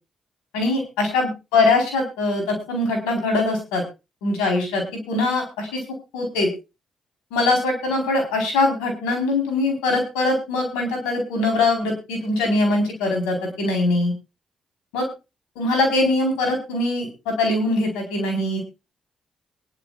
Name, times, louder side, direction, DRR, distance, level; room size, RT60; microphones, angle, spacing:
voice 1, 0.5-3.8 4.2-5.8 6.1-6.5 7.3-14.1 14.9-15.1 15.6-18.6, left 2 dB, 85° left, 3 dB, 4.4 m, -22 dB
22.5 x 11.5 x 2.5 m, 0.28 s
hypercardioid pair, 45°, 0 cm